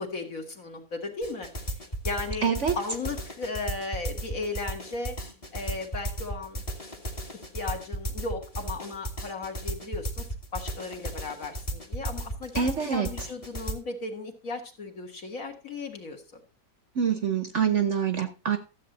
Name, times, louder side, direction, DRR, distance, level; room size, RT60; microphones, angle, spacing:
voice 1, 0.0-1.5 2.0-5.2 5.5-6.6 7.3-10.3 10.5-16.2, left 3 dB, 55° left, 3 dB, 2.2 m, -36 dB
sound 1, 1.2-13.7, right 1 dB, 20° left, 1.4 m, -35 dB
voice 2, 2.4-2.7 12.6-13.1 17.0-18.6, right 7 dB, 55° right, 9 dB, 1.0 m, -25 dB
13.0 x 7.6 x 4.0 m, 0.32 s
omnidirectional pair, 1.8 m